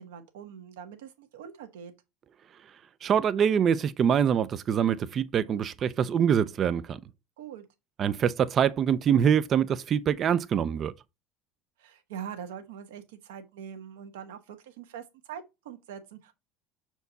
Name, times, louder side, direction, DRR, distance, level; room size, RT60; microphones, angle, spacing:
voice 1, 0.0-1.9 7.4-7.6 11.8-16.3, right 8 dB, 80° right, 1.5 m, -43 dB
voice 2, 3.0-7.0 8.0-10.9, right 8 dB, 45° right, 0.6 m, -24 dB
6.8 x 4.6 x 4.1 m
hypercardioid pair, 75°, 0 cm